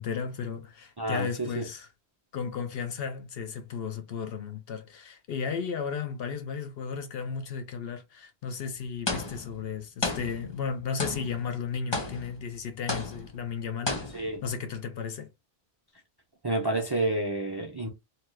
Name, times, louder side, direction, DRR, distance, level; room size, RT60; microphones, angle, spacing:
voice 1, 0.0-1.9 2.3-15.3, left 6 dB, 65° left, 0.8 m, -34 dB
voice 2, 1.0-1.6 14.1-14.4 16.4-17.9, right 2 dB, 35° right, 0.4 m, -29 dB
sound 1, 9.1-9.7 10.0-10.7 11.0-11.5 11.9-12.5 12.9-13.4 13.9-14.5, left 2 dB, 30° left, 0.7 m, -33 dB
2.9 x 2.3 x 3.1 m
omnidirectional pair, 1.1 m